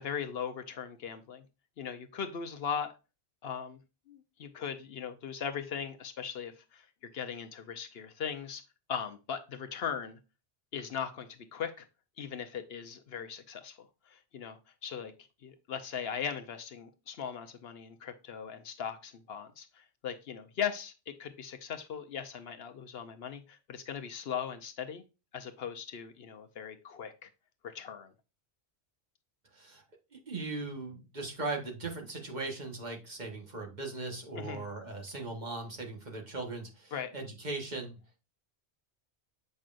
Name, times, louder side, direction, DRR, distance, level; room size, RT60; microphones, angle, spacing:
voice 1, 0.0-1.4 1.8-2.9 3.4-3.8 4.1-6.9 7.1-8.6 8.9-10.2 10.7-11.9 12.2-13.8 14.1-15.1 15.4-25.0 25.3-27.3 27.6-28.1 34.3-34.7 36.9-37.1, left 7 dB, 65° left, 8 dB, 0.9 m, -39 dB
voice 2, 30.1-38.0, right 3 dB, 40° right, 1 dB, 1.5 m, -39 dB
7.5 x 5.3 x 2.5 m, 0.29 s
omnidirectional pair, 1.1 m